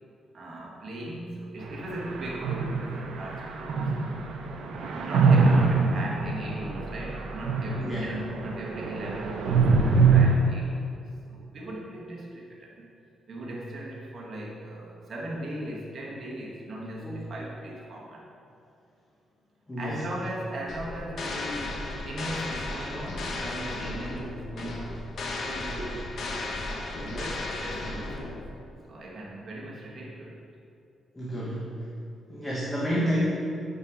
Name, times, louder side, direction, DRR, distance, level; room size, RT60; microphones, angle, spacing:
voice 1, 0.3-4.2 4.5-11.0 11.3-12.9 13.3-18.3 19.8-25.0 25.4-26.3 26.9-28.4 28.8-30.4, right 1 dB, 45° right, -3 dB, 1.2 m, -38 dB
sound 1, 1.6-10.3, right 4 dB, 85° right, 0.6 m, -24 dB
voice 2, 19.7-20.0 31.2-31.7 32.3-33.2, equal, 15° left, -6 dB, 1.0 m, -30 dB
sound 2, 20.7-28.6, left 2 dB, 60° left, 0.8 m, -35 dB
5.3 x 5.2 x 4.9 m, 2.6 s
cardioid pair, 125°, 0 cm